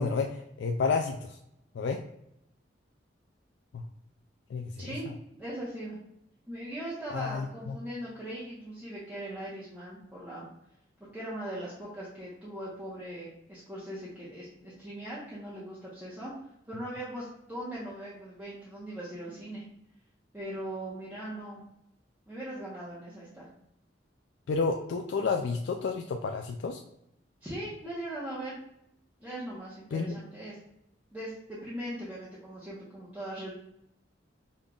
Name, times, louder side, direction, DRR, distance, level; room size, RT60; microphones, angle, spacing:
voice 1, 0.0-1.4 1.7-2.0 3.7-3.8 4.5-4.9 7.1-7.8 24.5-26.8 29.9-30.1, left 4 dB, 65° left, 4 dB, 0.3 m, -30 dB
voice 2, 4.8-6.0 6.5-10.5 11.1-19.6 20.3-21.6 22.3-23.5 27.4-28.6 29.2-30.6 31.1-33.5, right 1 dB, 10° right, -9 dB, 1.0 m, -40 dB
5.2 x 3.6 x 2.3 m, 0.82 s
head